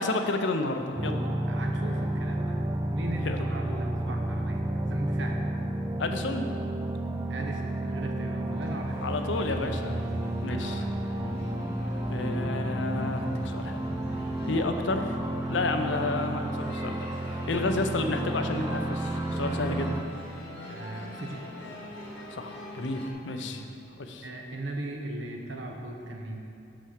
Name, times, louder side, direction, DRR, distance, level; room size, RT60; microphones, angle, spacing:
voice 1, 0.0-1.3 3.2-3.4 6.0-6.4 9.0-10.0 10.4-10.8 12.1-13.9 14.5-15.2 15.5-20.0 22.4-23.0 23.3-23.6 24.0-24.2, left 3 dB, 70° left, 5 dB, 0.6 m, -31 dB
sound 1, 1.0-20.0, right 1 dB, 15° right, 0.3 m, -31 dB
voice 2, 1.5-2.6 2.9-5.4 7.3-9.0 10.4-11.0 20.7-21.5 23.5-23.6 24.2-26.3, right 1 dB, 70° right, 1 dB, 1.0 m, -38 dB
sound 2, 8.5-23.1, equal, 55° left, 1.6 m, -41 dB
6.1 x 5.7 x 6.5 m, 2.6 s
head